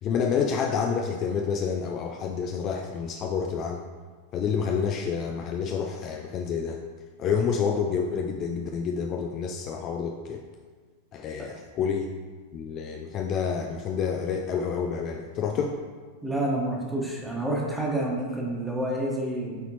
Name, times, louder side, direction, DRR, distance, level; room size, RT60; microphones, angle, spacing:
voice 1, 0.0-3.8 4.3-6.8 7.2-10.4 11.1-12.1 12.5-15.8, left 6 dB, 35° left, 3 dB, 0.4 m, -28 dB
voice 2, 16.2-19.6, right 1 dB, 5° right, -3 dB, 1.4 m, -28 dB
8.1 x 4.1 x 3.0 m, 1.5 s
figure-of-eight pair, 90°, 0 cm